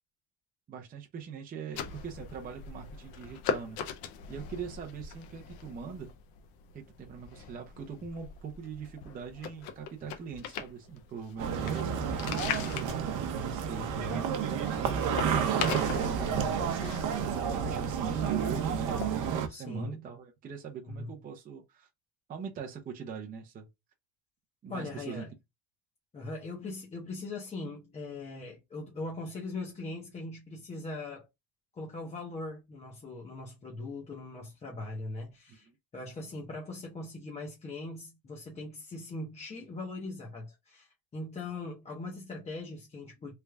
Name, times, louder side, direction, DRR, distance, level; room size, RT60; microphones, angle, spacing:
voice 1, 0.7-3.8 4.3-6.1 6.7-12.9 13.4-14.9 15.6-16.7 17.3-21.9 22.3-23.7 24.6-25.2 35.5-35.7, right 6 dB, 25° right, 0.6 m, -42 dB
sound 1, 1.7-19.3, left 7 dB, 75° left, 0.7 m, -41 dB
sound 2, 11.4-19.5, right 7 dB, 55° right, 0.8 m, -30 dB
voice 2, 13.7-14.3 19.5-20.0 20.9-21.1 24.7-25.3 26.1-31.3 31.7-35.7 35.9-43.3, left 2 dB, 20° left, 0.7 m, -40 dB
3.3 x 2.4 x 3.3 m
cardioid pair, 160°, 36 cm